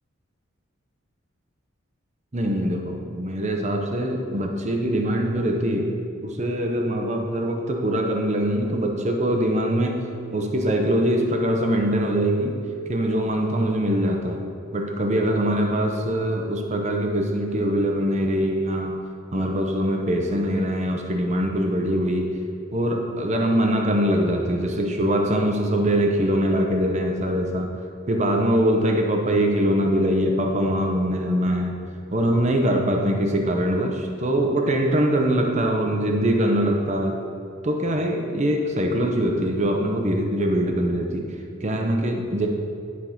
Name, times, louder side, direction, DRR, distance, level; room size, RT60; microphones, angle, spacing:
voice 1, 2.3-12.6 12.9-14.4 14.7-19.0 19.3-22.3 22.7-27.7 28.1-31.8 32.1-37.2 37.6-41.3 41.6-42.5, equal, 35° right, 2 dB, 0.8 m, -23 dB
11.0 x 4.8 x 5.7 m, 2.6 s
head